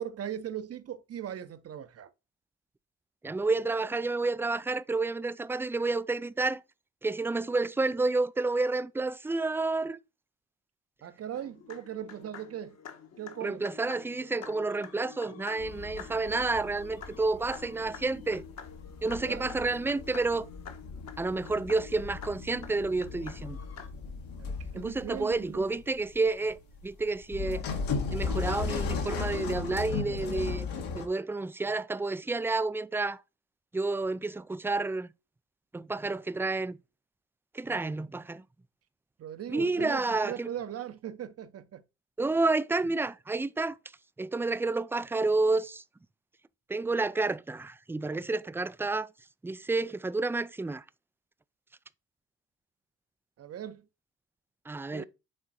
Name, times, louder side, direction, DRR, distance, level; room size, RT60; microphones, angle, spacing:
voice 1, 0.0-2.1 11.0-12.8 13.2-13.6 19.3-19.5 24.4-25.8 39.2-41.8 53.4-53.8 54.9-55.0, right 10 dB, 45° right, 0.8 m, -39 dB
voice 2, 3.2-6.6 7.0-10.0 13.4-18.4 19.0-20.5 21.2-23.6 24.7-26.6 26.8-27.6 28.1-30.7 30.9-33.2 33.7-35.1 35.7-36.8 37.5-38.4 39.5-40.5 42.2-43.8 44.2-45.8 46.7-49.1 49.4-50.8 54.7-55.0, right 3 dB, 5° right, 0.4 m, -30 dB
sound 1, 11.3-23.9, left 7 dB, 50° left, 1.3 m, -48 dB
sound 2, 15.6-31.1, left 5 dB, 75° left, 1.8 m, -37 dB
6.5 x 3.6 x 4.3 m
supercardioid pair, 65°, 35 cm